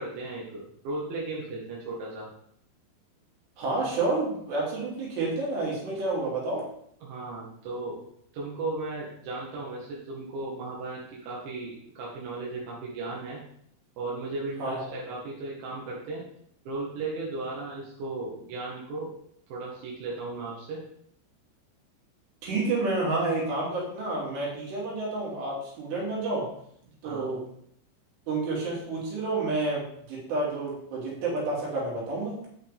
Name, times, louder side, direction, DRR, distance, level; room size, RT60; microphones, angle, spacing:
voice 1, 0.0-2.3 7.0-8.0 8.3-13.4 14.0-16.2 16.7-19.1 19.5-20.8 27.0-27.3, right 3 dB, 90° right, -5 dB, 4.1 m, -36 dB
voice 2, 3.6-6.6 14.6-14.8 22.4-26.5 27.0-27.4 28.3-32.3, right 2 dB, 70° right, -4 dB, 5.1 m, -29 dB
9.1 x 9.0 x 3.6 m, 0.68 s
omnidirectional pair, 5.1 m